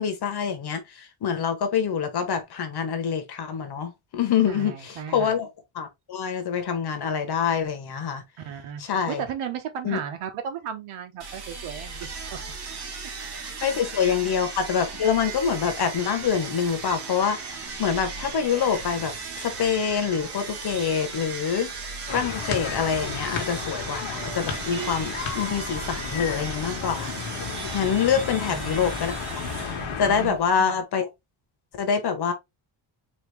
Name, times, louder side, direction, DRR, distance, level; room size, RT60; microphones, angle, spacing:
voice 1, 0.0-5.5 5.7-8.2 8.8-9.2 9.8-10.0 13.6-17.4 17.8-21.7 22.1-27.1 27.7-29.1 30.0-31.1 31.7-32.3, left 7 dB, 50° left, 1.2 m, -26 dB
voice 2, 4.5-5.3 8.4-8.8 9.1-12.4 13.6-13.7 14.0-14.2 28.4-28.7 30.1-30.8, right 8 dB, 85° right, 1.2 m, -35 dB
sound 1, 11.2-30.7, right 3 dB, 50° right, 1.8 m, -38 dB
sound 2, 11.9-28.2, right 6 dB, 30° right, 0.7 m, -40 dB
sound 3, 22.1-30.3, left 6 dB, 75° left, 1.4 m, -33 dB
4.2 x 2.8 x 3.3 m
cardioid pair, 155°, 49 cm